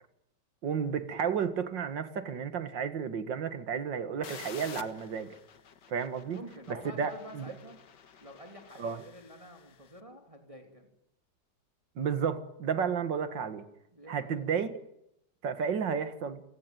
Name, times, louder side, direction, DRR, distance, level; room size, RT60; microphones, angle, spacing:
voice 1, 0.6-5.4 5.9-6.4 6.7-7.5 8.8-9.0 12.0-13.6 14.1-14.7 15.4-16.4, right 7 dB, 80° right, 12 dB, 2.4 m, -32 dB
sound 1, 4.2-9.9, left 7 dB, 70° left, 2.0 m, -50 dB
voice 2, 6.2-7.8 8.2-10.9 13.9-14.5, equal, 15° right, 4 dB, 3.0 m, -49 dB
29.5 x 17.5 x 9.3 m, 0.82 s
omnidirectional pair, 1.9 m